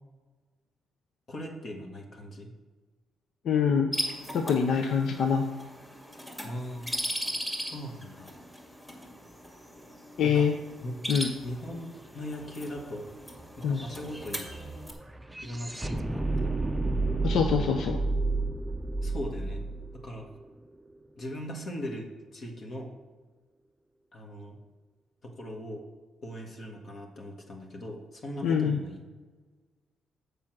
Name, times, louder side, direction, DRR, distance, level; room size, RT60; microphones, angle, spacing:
voice 1, 1.3-2.5 6.4-6.9 7.7-8.3 10.2-10.5 10.8-11.0 11.4-13.1 13.6-14.5 15.4-16.5 19.0-19.6 19.9-20.3 21.2-22.9 24.1-24.6 25.2-25.8 26.2-29.0, equal, 45° left, 1 dB, 1.6 m, -39 dB
voice 2, 3.4-3.9 4.3-5.4 10.2-10.5 11.1-11.3 13.6-13.8 17.2-18.0 28.4-28.8, left 6 dB, 70° left, 4 dB, 0.7 m, -25 dB
sound 1, 3.9-14.9, equal, 10° left, 2.0 m, -39 dB
sound 2, 12.4-12.5 12.7-21.0, right 2 dB, 10° right, 0.5 m, -32 dB
7.3 x 5.0 x 6.1 m, 1.4 s
cardioid pair, 90°, 0 cm